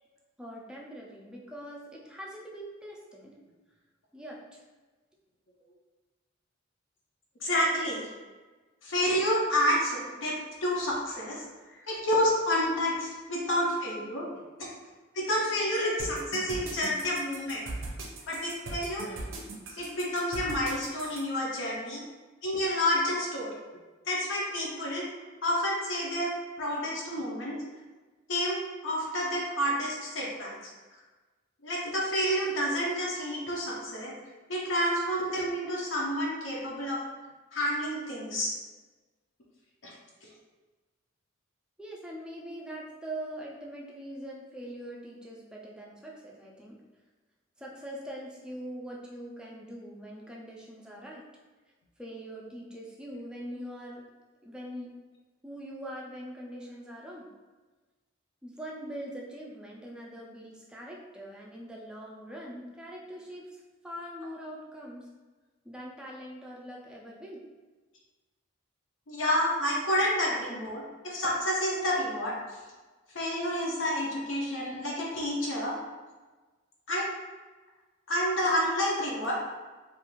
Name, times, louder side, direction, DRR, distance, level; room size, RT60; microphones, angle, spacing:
voice 1, 0.4-3.3 4.1-4.6 41.8-46.8 47.6-51.2 52.0-54.0 54.4-54.9 55.4-57.3 58.4-65.1 65.6-67.4, equal, 5° right, -3 dB, 0.3 m, -42 dB
voice 2, 7.4-8.1 8.8-10.3 10.6-14.3 15.1-17.7 18.3-19.2 19.8-22.0 22.4-23.5 24.1-25.0 25.4-26.3 26.6-27.6 28.3-28.6 28.8-30.7 31.6-34.1 34.5-37.0 37.5-38.5 39.8-39.9 69.1-72.3 73.1-75.8 76.9-77.1 78.1-79.3, equal, 70° left, -4 dB, 0.5 m, -29 dB
sound 1, 16.0-21.2, right 2 dB, 75° right, 0.5 m, -39 dB
2.4 x 2.3 x 3.0 m, 1.3 s
head